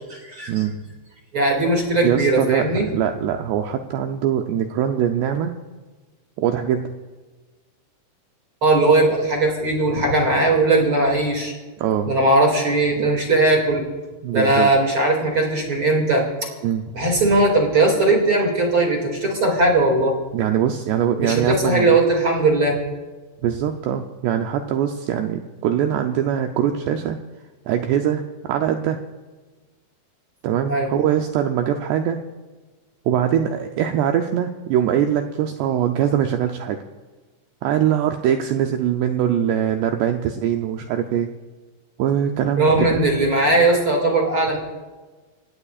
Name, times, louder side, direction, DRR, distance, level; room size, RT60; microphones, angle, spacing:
voice 1, 0.1-0.5 1.3-2.9 8.6-11.5 12.1-13.8 14.3-16.5 16.9-20.1 21.2-22.8 30.7-30.9 42.6-44.6, right 2 dB, 40° right, 0 dB, 2.2 m, -19 dB
voice 2, 2.0-5.5 6.4-6.9 11.8-12.1 14.2-14.7 16.6-16.8 20.3-22.0 23.4-27.2 27.7-29.0 30.4-32.2 33.1-36.8 37.6-41.3 42.0-43.0, right 9 dB, 80° right, 5 dB, 2.4 m, -22 dB
29.0 x 17.0 x 2.5 m, 1.3 s
omnidirectional pair, 5.6 m